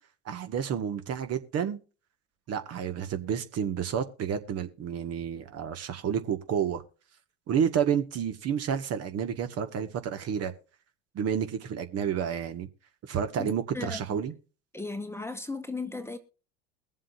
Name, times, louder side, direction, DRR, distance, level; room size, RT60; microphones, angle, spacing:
voice 1, 0.2-1.8 2.5-6.8 7.5-10.5 11.1-12.7 13.1-14.3, right 8 dB, 40° right, 1.6 m, -30 dB
voice 2, 13.4-14.2 14.7-16.2, left 3 dB, 5° left, 1.2 m, -36 dB
22.0 x 7.5 x 2.6 m
hypercardioid pair, 85°, 37 cm